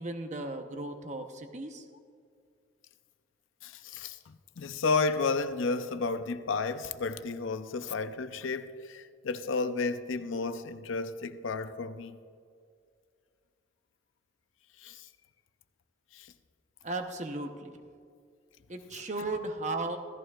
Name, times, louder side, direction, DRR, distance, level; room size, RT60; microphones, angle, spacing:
voice 1, 0.0-1.8 16.8-17.8 18.7-20.0, right 2 dB, 35° right, 0.8 m, -36 dB
voice 2, 3.6-12.2 14.8-15.1 16.1-16.3, left 4 dB, 85° left, 0.6 m, -32 dB
16.0 x 14.0 x 2.4 m
head